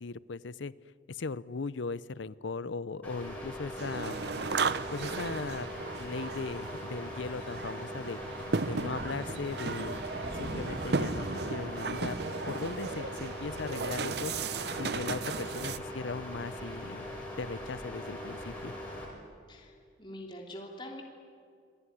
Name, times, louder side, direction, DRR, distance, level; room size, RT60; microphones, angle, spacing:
voice 1, 0.0-0.7 1.1-4.2 4.9-5.7 6.0-8.2 8.7-10.0 10.3-12.2 12.5-14.3 14.8-17.0 17.4-18.7, left 4 dB, 75° left, 18 dB, 0.6 m, -38 dB
sound 1, 3.0-19.1, left 1 dB, 5° left, 6.0 m, -41 dB
sound 2, 3.8-15.8, right 4 dB, 55° right, 0.6 m, -36 dB
Thunder, 8.2-17.0, equal, 40° right, 1.4 m, -47 dB
voice 2, 19.5-21.0, left 1 dB, 25° left, 0 dB, 3.3 m, -44 dB
27.0 x 20.5 x 10.0 m, 2.3 s
head